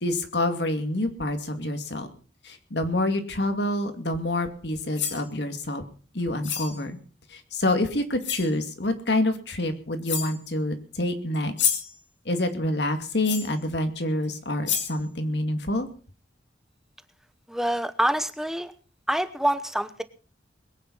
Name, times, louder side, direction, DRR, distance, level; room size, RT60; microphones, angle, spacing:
voice 1, 0.0-2.1 2.4-5.8 6.1-7.0 7.3-11.8 12.3-15.9, left 1 dB, 65° left, 7 dB, 2.4 m, -27 dB
sound 1, 4.8-5.3 6.4-6.8 7.7-7.8 8.2-8.5 9.6-9.7 10.0-10.4 11.3-12.0 13.2-13.6 14.2-14.3 14.7-15.0, left 8 dB, 85° left, 3.4 m, -29 dB
voice 2, 17.5-18.7 19.1-20.0, right 1 dB, ahead, 12 dB, 1.0 m, -26 dB
21.5 x 9.4 x 5.6 m, 0.39 s
head